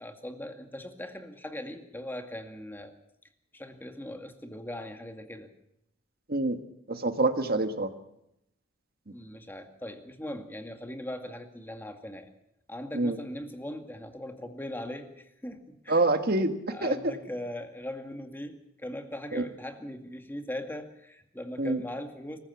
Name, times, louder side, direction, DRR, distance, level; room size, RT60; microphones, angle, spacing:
voice 1, 0.0-2.9 3.5-5.5 7.4-7.5 9.1-12.3 12.7-16.1 16.7-22.4, left 1 dB, 10° left, 5 dB, 2.1 m, -40 dB
voice 2, 6.9-7.9 12.9-13.2 15.9-16.5 16.8-17.0 19.3-19.4 21.6-21.8, right 2 dB, 50° right, 8 dB, 1.7 m, -26 dB
25.0 x 15.5 x 7.2 m, 0.81 s
head